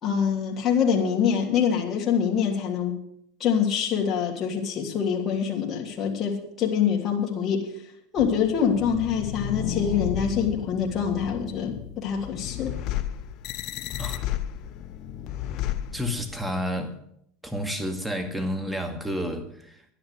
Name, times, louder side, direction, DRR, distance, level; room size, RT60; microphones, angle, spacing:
voice 1, 0.0-3.0 3.4-7.7 8.1-12.7, left 7 dB, 35° left, 0 dB, 3.0 m, -25 dB
sound 1, 8.2-16.5, left 10 dB, 50° left, 0.9 m, -33 dB
voice 2, 15.9-17.0 17.4-19.8, equal, 5° right, 6 dB, 2.1 m, -30 dB
11.5 x 10.5 x 6.8 m, 0.69 s
supercardioid pair, 115°, 0 cm